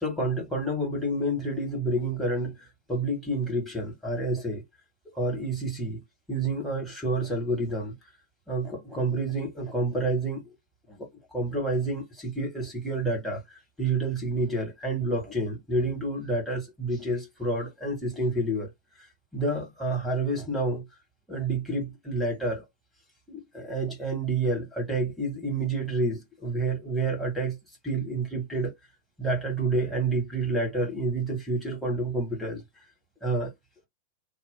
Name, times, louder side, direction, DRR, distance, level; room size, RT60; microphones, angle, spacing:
voice 1, 0.0-2.6 2.9-4.6 5.1-6.0 6.3-7.9 8.5-10.4 10.9-13.4 13.8-18.7 19.3-20.8 21.3-22.6 23.3-27.6 27.8-28.7 29.2-32.6 33.2-33.5, right 2 dB, 5° left, 2.0 m, -29 dB
2.9 x 2.4 x 3.8 m
figure-of-eight pair, 90°, 0 cm